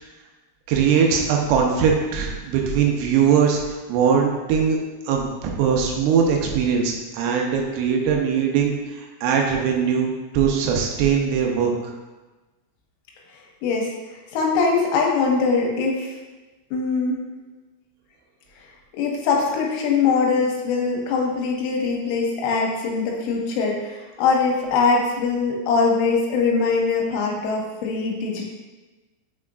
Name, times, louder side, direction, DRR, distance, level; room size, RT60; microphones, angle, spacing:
voice 1, 0.7-4.8 5.1-11.7, right 7 dB, 85° right, 1 dB, 3.5 m, -21 dB
voice 2, 13.3-13.9 14.3-16.1 16.7-17.2 19.0-28.4, left 4 dB, 85° left, -1 dB, 3.2 m, -22 dB
8.3 x 4.7 x 2.5 m, 1.2 s
omnidirectional pair, 5.8 m